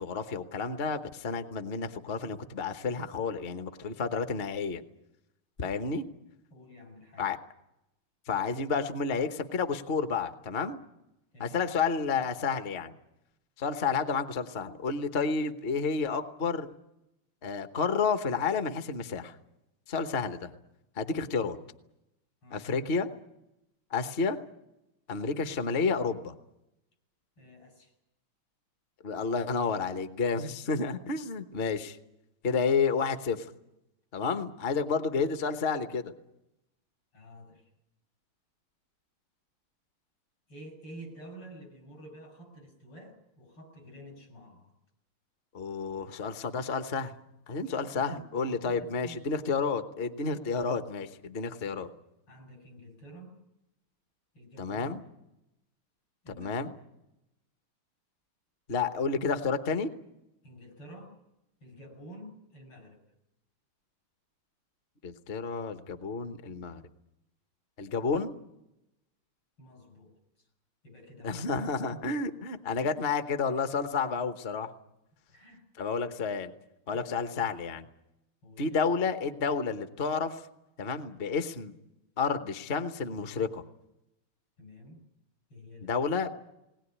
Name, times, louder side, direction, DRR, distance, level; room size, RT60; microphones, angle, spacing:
voice 1, 0.0-4.8 5.6-6.0 7.2-7.4 8.3-10.8 11.4-12.9 13.6-16.7 17.4-19.3 19.9-20.5 21.0-21.6 22.5-23.1 23.9-24.4 25.1-26.3 29.0-32.0 32.4-33.5 34.1-36.1 45.5-47.1 47.5-51.9 54.6-55.0 56.4-56.7 58.7-59.9 65.0-66.8 67.8-68.3 71.2-74.7 75.8-76.5 76.9-77.9 78.6-80.4 80.8-81.7 82.2-83.6 85.8-86.3, left 5 dB, 40° left, 9 dB, 0.9 m, -30 dB
voice 2, 6.5-7.2 11.3-11.6 22.4-22.7 27.4-27.9 37.1-37.6 40.5-44.7 47.8-49.2 51.6-51.7 52.3-53.4 54.3-54.9 56.2-56.5 60.4-61.1 61.6-63.0 69.6-70.1 70.4-70.5 70.8-71.4 72.8-72.9 75.3-75.7 76.8-77.1 78.4-78.8 84.6-85.0 85.5-85.9, equal, 80° left, 2 dB, 6.8 m, -49 dB
20.0 x 19.5 x 10.0 m, 0.90 s
omnidirectional pair, 2.4 m